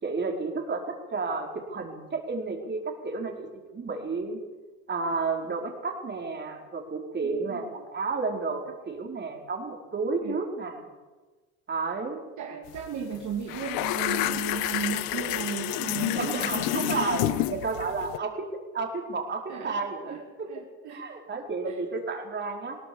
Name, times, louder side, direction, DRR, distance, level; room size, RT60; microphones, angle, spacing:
voice 1, 0.0-4.4 4.9-10.9 11.7-12.2 16.1-17.2 17.5-20.5 20.9-22.8, right 4 dB, 30° right, 2 dB, 4.9 m, -32 dB
voice 2, 7.2-7.6 10.2-10.3 12.4-17.4 19.5-20.2 20.5-21.2 21.6-21.8, right 6 dB, 55° right, 1 dB, 2.7 m, -35 dB
sound 1, 12.7-12.9 13.1-18.2, left 17 dB, 70° left, 1.0 m, -29 dB
21.0 x 18.0 x 7.2 m, 1.3 s
supercardioid pair, 90°, 36 cm